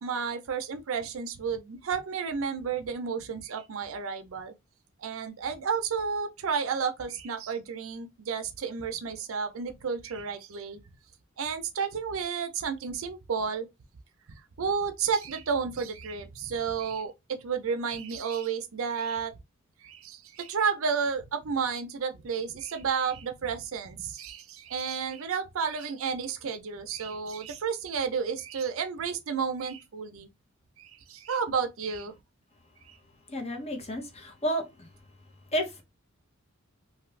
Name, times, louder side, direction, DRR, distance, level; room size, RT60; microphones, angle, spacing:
voice 1, 0.0-4.5 5.0-10.8 11.4-13.7 14.3-19.3 19.8-30.3 30.8-32.1 32.8-33.0, right 6 dB, 70° right, 0.5 m, -32 dB
voice 2, 33.3-34.6 35.5-35.6, equal, 30° left, 0.8 m, -30 dB
2.7 x 2.5 x 3.1 m
head